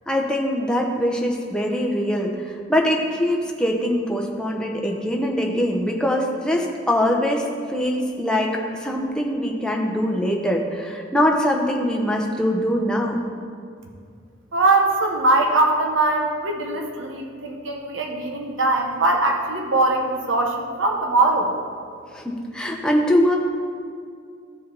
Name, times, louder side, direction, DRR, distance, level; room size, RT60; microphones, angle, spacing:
voice 1, 0.1-13.2 22.1-23.4, equal, 5° left, 0 dB, 0.8 m, -23 dB
voice 2, 14.5-21.5, right 2 dB, 80° right, 1 dB, 1.0 m, -21 dB
14.5 x 5.0 x 3.9 m, 2.2 s
head